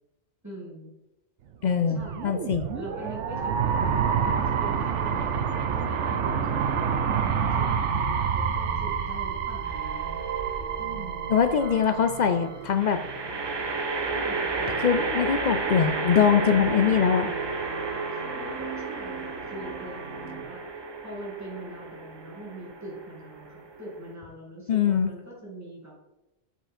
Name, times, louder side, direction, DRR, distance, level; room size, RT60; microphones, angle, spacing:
voice 1, 0.4-0.9 1.9-2.3 2.7-4.0 4.3-10.2 10.8-11.2 14.0-14.6 18.1-25.9, right 1 dB, 15° right, -5 dB, 2.4 m, -42 dB
voice 2, 1.6-2.6 11.3-13.0 14.8-17.3 24.7-25.1, left 7 dB, 55° left, 9 dB, 0.5 m, -23 dB
sound 1, 1.8-12.7, right 7 dB, 75° right, 1.0 m, -28 dB
sound 2, 8.6-20.4, right 5 dB, 50° right, 2.1 m, -40 dB
sound 3, 9.6-10.2 12.8-24.1, right 3 dB, 35° right, 0.4 m, -32 dB
7.4 x 5.5 x 4.3 m, 0.93 s
omnidirectional pair, 1.2 m